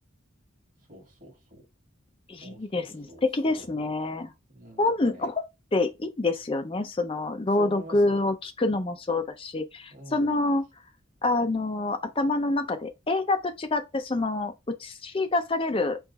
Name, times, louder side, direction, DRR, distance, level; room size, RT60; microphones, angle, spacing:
voice 1, 0.9-1.6 2.4-3.2 3.5-3.7 4.5-5.3 7.6-8.2 9.9-10.3, right 1 dB, 40° right, 1.7 m, -46 dB
voice 2, 2.3-4.3 4.8-5.4 5.7-10.7 11.2-16.0, left 2 dB, 25° left, 0.5 m, -27 dB
4.6 x 2.5 x 4.0 m
head